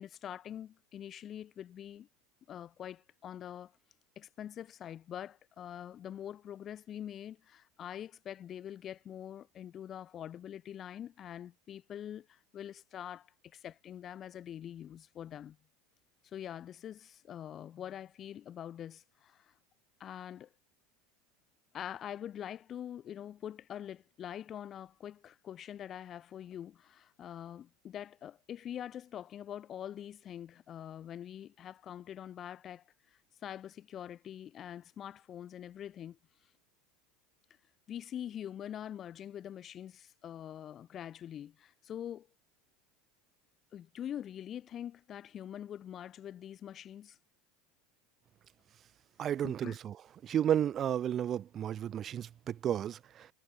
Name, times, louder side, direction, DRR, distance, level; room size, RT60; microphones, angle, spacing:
voice 1, 0.0-2.1 2.5-3.7 4.2-15.6 16.2-19.5 20.0-20.5 21.7-32.8 33.4-36.2 37.9-42.3 43.7-47.2 49.4-49.8, left 10 dB, 40° left, 5.4 m, -44 dB
voice 2, 49.2-49.9 50.2-53.3, right 10 dB, 40° right, 1.0 m, -32 dB
hypercardioid pair, 100°, 0 cm